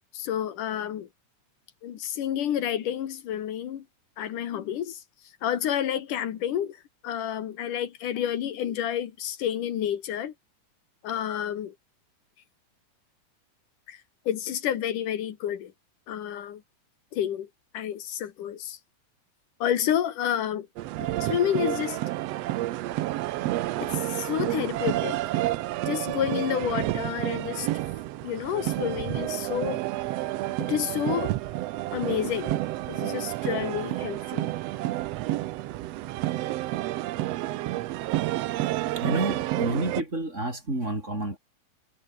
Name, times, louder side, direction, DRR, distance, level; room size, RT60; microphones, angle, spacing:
voice 1, 0.1-1.1 1.8-3.8 4.2-5.0 5.4-6.8 7.0-10.3 11.0-11.7 13.9-15.7 16.1-16.6 17.1-17.5 17.7-18.8 19.6-20.7 21.2-22.0 23.8-25.4 25.9-27.7 28.2-29.8 30.6-31.3 31.9-32.6 32.9-34.5, left 10 dB, 80° left, 3.2 m, -29 dB
sound 1, 20.8-40.0, right 16 dB, 75° right, 1.5 m, -30 dB
voice 2, 38.9-41.4, right 2 dB, 20° right, 5.0 m, -29 dB
omnidirectional pair, 3.7 m